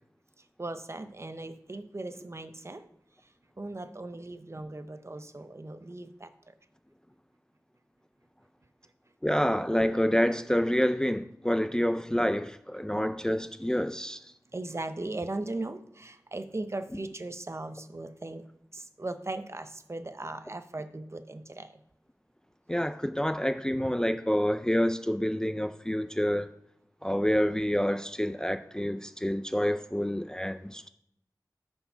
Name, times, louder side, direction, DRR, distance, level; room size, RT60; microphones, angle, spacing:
voice 1, 0.6-2.8 3.6-6.3 14.5-18.5 18.7-21.7, right 2 dB, 40° right, 0.7 m, -38 dB
voice 2, 9.2-14.2 22.7-26.5 27.0-30.9, equal, 10° left, 0.4 m, -28 dB
11.5 x 4.5 x 4.5 m
wide cardioid pair, 60°, 7 cm